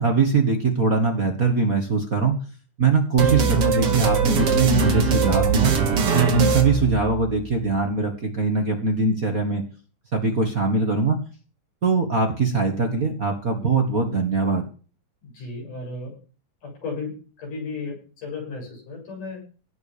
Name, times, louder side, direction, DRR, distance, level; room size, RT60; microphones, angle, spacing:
voice 1, 0.0-2.4 2.8-5.7 6.1-9.6 10.1-11.2 11.8-14.7, right 4 dB, 35° right, 4 dB, 1.7 m, -21 dB
sound 1, 3.2-7.5, right 5 dB, 50° right, 2.7 m, -21 dB
voice 2, 15.2-16.2 16.6-17.1 17.4-19.4, left 3 dB, 90° left, 0 dB, 8.6 m, -34 dB
17.5 x 9.3 x 5.1 m, 0.37 s
omnidirectional pair, 3.6 m